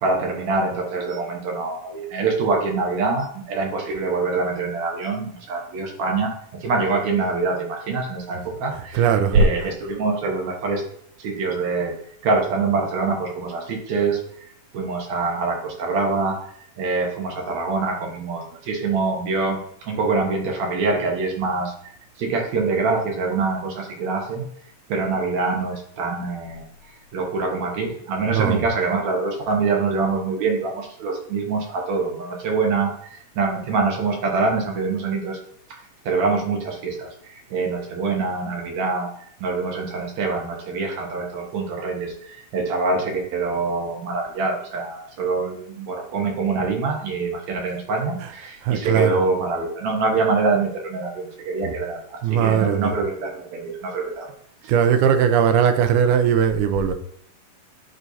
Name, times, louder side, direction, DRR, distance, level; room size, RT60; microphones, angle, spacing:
voice 1, 0.0-6.3 6.6-9.0 9.3-10.8 11.2-11.9 12.2-14.5 14.7-21.7 22.2-24.4 24.9-26.6 27.1-35.4 36.0-54.3 54.6-54.7, right 4 dB, 60° right, 2.2 m, -25 dB
voice 2, 8.7-9.5 28.3-28.6 48.2-48.3 48.6-49.2 51.6-51.7 52.2-53.0 54.7-56.9, right 7 dB, 80° right, 1.9 m, -19 dB
11.0 x 4.3 x 2.7 m
omnidirectional pair, 4.0 m